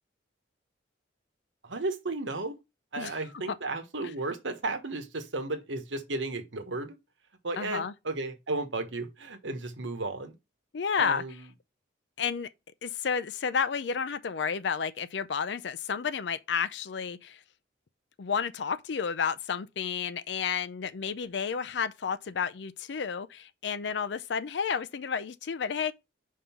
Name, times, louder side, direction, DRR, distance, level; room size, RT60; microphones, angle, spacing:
voice 1, 1.6-2.5 2.9-6.9 7.4-10.4 11.0-11.4, right 2 dB, 85° right, 1.2 m, -34 dB
voice 2, 7.6-7.9 10.7-11.2 12.2-12.5 12.8-17.4 18.2-25.9, left 6 dB, 65° left, 0.5 m, -31 dB
5.4 x 3.7 x 5.7 m
head